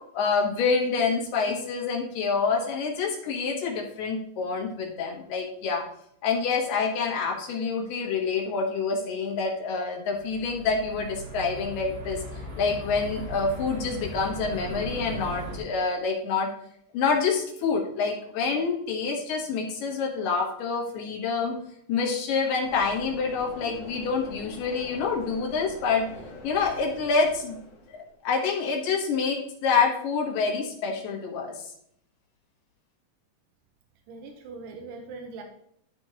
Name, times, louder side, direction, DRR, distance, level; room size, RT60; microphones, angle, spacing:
voice 1, 0.1-5.8 6.2-12.2 12.6-16.5 16.9-21.6 21.9-26.1 26.4-27.6 27.9-31.5, left 5 dB, 80° left, 0 dB, 3.0 m, -27 dB
sound 1, 10.1-15.6, equal, 55° right, 2.8 m, -38 dB
sound 2, 22.6-28.1, left 2 dB, 50° left, 1.7 m, -45 dB
voice 2, 34.1-35.4, right 4 dB, 80° right, 4 dB, 2.6 m, -41 dB
12.5 x 4.4 x 3.0 m, 0.69 s
omnidirectional pair, 3.9 m